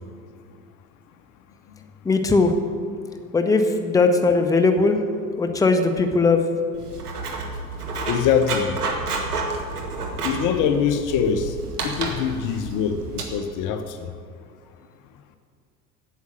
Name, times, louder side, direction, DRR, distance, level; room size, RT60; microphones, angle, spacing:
voice 1, 2.0-2.5 3.3-5.0 5.4-6.4, left 3 dB, 10° left, 6 dB, 0.8 m, -19 dB
Writing, 6.7-13.2, right 3 dB, 80° right, 1.5 m, -30 dB
voice 2, 8.1-8.8 10.2-11.5 11.8-14.1, left 7 dB, 45° left, 9 dB, 0.8 m, -23 dB
8.2 x 7.7 x 7.9 m, 2.1 s
figure-of-eight pair, 70°, 45 cm